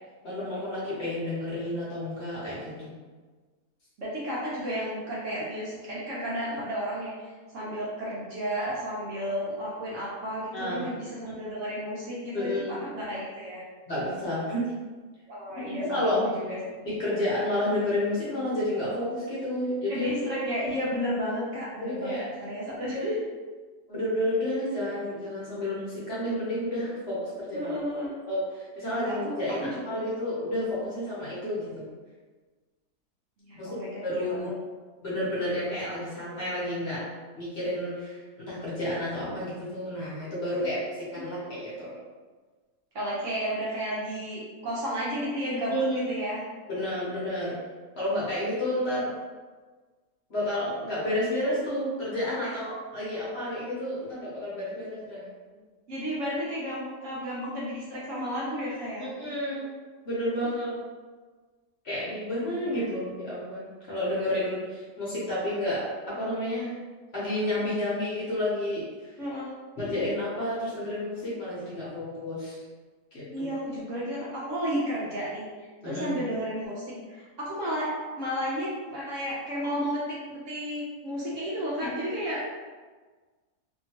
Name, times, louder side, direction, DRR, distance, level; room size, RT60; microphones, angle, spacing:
voice 1, 0.2-2.9 10.5-10.9 12.3-12.8 13.9-14.7 15.7-16.2 16.8-20.5 21.8-22.3 22.9-23.1 23.9-27.7 28.3-31.9 33.5-34.5 35.0-37.0 37.4-42.0 45.7-46.0 46.7-47.6 47.9-49.1 50.3-55.3 59.0-59.7 60.0-60.8 61.8-66.7 67.1-68.8 69.8-72.6 73.1-73.5 75.8-76.2, left 1 dB, 50° left, -8 dB, 1.0 m, -30 dB
voice 2, 4.0-13.6 15.3-16.8 19.9-23.2 27.5-28.2 28.9-30.2 33.4-34.5 40.6-40.7 42.9-46.4 52.4-52.5 55.9-59.1 62.4-62.8 69.2-69.5 73.3-82.5, equal, 60° right, -6 dB, 0.9 m, -33 dB
2.8 x 2.7 x 2.8 m, 1.4 s
omnidirectional pair, 1.7 m